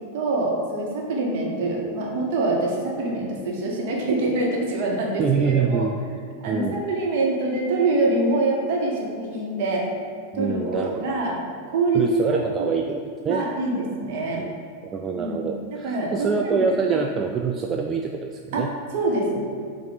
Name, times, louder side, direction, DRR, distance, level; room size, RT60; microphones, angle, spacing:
voice 1, 0.1-5.9 6.4-9.9 10.3-11.4 11.7-12.7 13.3-14.4 15.1-15.4 15.7-17.0 18.5-19.4, right 2 dB, 50° right, -2 dB, 1.3 m, -25 dB
voice 2, 5.2-5.9 6.5-6.8 10.3-11.2 11.9-13.5 14.3-14.5 14.9-18.7, right 5 dB, 25° right, 2 dB, 0.3 m, -25 dB
7.7 x 2.6 x 5.1 m, 2.3 s
figure-of-eight pair, 90°, 0 cm